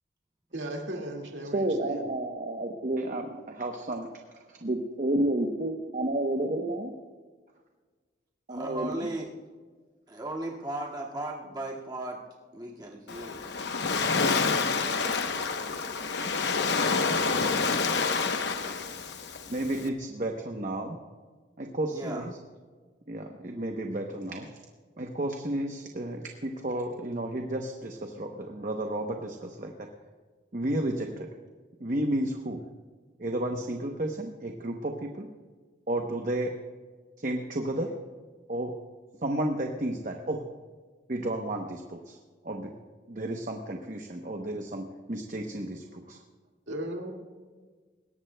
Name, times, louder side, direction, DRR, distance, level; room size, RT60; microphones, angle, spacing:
voice 1, 0.5-2.1 46.7-47.1, right 1 dB, 85° right, 1 dB, 2.0 m, -36 dB
voice 2, 1.5-4.1 4.6-6.9 8.5-9.1 14.8-14.9 16.2-16.3 19.5-21.0 21.6-22.3 23.1-24.5 25.0-29.7 30.5-31.3 31.8-32.6 33.2-35.3 35.9-36.5 37.2-37.9 38.5-38.7 39.2-40.4 41.1-42.2 42.4-42.7 43.1-46.2, right 1 dB, 45° right, 3 dB, 0.9 m, -31 dB
voice 3, 8.5-9.3 10.1-12.2 12.5-13.5 21.9-22.3, right 2 dB, 25° right, -4 dB, 1.9 m, -36 dB
Waves surf, 13.1-19.9, left 4 dB, 70° left, 0.9 m, -28 dB
21.0 x 17.5 x 2.2 m, 1.4 s
head